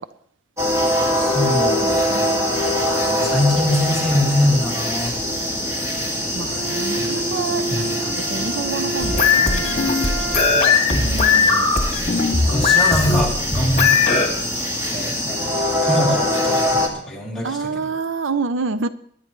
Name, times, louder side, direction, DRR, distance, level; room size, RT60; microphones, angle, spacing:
sound 1, 0.6-16.9, equal, 15° right, 1.9 m, -23 dB
voice 1, 1.2-2.3 2.8-5.1 6.9-7.1 7.7-7.9 10.9-11.7 12.4-14.3 14.9-17.9, left 1 dB, ahead, -5 dB, 3.0 m, -24 dB
voice 2, 6.4-10.0 10.5-11.0 17.4-18.9, right 4 dB, 75° right, 13 dB, 0.5 m, -28 dB
Bowed string instrument, 6.5-10.8, right 3 dB, 50° right, 1.0 m, -30 dB
sound 2, 9.0-14.3, left 5 dB, 35° left, 2.0 m, -18 dB
22.5 x 10.5 x 3.1 m, 0.63 s
head